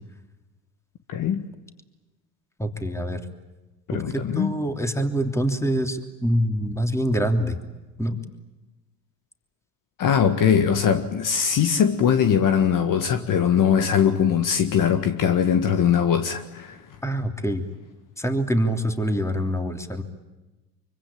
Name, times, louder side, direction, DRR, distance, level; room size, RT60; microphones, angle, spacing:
voice 1, 1.1-1.5 3.9-4.5 10.0-16.8, left 8 dB, 45° left, 8 dB, 1.8 m, -21 dB
voice 2, 2.6-3.2 3.9-7.6 8.0-8.2 17.0-17.6 18.2-20.0, equal, 5° left, 6 dB, 3.1 m, -25 dB
25.0 x 24.0 x 8.8 m, 1.1 s
hypercardioid pair, 75°, 45 cm